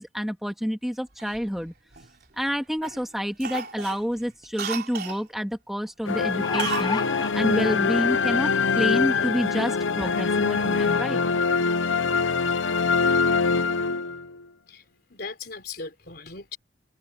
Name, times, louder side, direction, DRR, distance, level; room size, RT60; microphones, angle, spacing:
voice 1, 0.0-1.7 2.4-7.0 7.3-11.2, equal, ahead, 1.9 m, -28 dB
Cough, 1.2-2.5 2.8-3.0 3.4-5.2 6.6-7.0 7.2-7.3, right 6 dB, 55° right, 4.1 m, -34 dB
sound 1, 4.0-4.1 4.4-4.5 6.1-7.3 8.2-8.3 8.7-8.8, left 5 dB, 20° left, 0.3 m, -30 dB
sound 2, 6.1-14.4, left 5 dB, 90° left, 0.8 m, -24 dB
voice 2, 14.7-16.6, left 4 dB, 55° left, 4.0 m, -39 dB
head